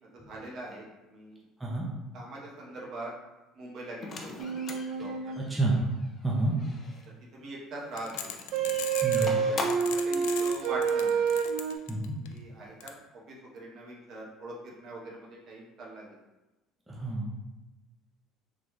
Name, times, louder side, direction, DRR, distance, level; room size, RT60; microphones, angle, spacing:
voice 1, 0.1-1.4 2.1-3.1 3.5-4.5 5.0-5.1 7.3-8.1 9.2-11.2 12.3-16.2, right 2 dB, 50° right, -3 dB, 1.1 m, -42 dB
sound 1, 4.0-7.1 8.0-10.0, left 3 dB, 35° left, 0.6 m, -41 dB
sound 2, 4.4-5.4 8.5-11.8, right 6 dB, 75° right, 0.4 m, -28 dB
voice 2, 5.4-5.8 6.2-6.5 9.0-9.4 11.9-12.2 16.9-17.3, right 2 dB, 10° right, -4 dB, 0.8 m, -29 dB
sound 3, 8.0-9.3 9.7-12.3 12.8-12.9, left 10 dB, 90° left, 0.4 m, -38 dB
3.9 x 3.2 x 3.2 m, 1.0 s
cardioid pair, 115°, 0 cm